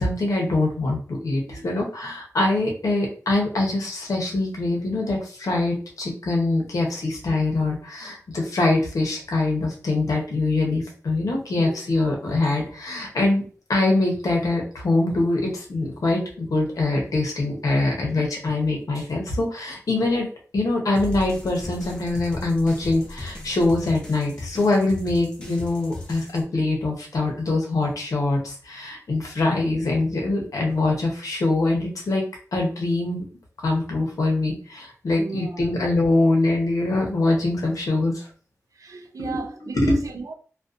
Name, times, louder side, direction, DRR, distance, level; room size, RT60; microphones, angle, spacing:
voice 1, 0.0-13.4 13.7-20.3 20.5-32.2 32.5-33.2 33.6-38.3 39.2-39.4 39.7-40.0, left 2 dB, 85° left, 0.8 m, -23 dB
sound 1, 21.0-26.4, left 2 dB, 15° left, 0.7 m, -37 dB
voice 2, 35.2-35.7 38.8-40.3, right 4 dB, 80° right, 0.4 m, -36 dB
2.5 x 2.2 x 2.4 m
cardioid pair, 55°, 6 cm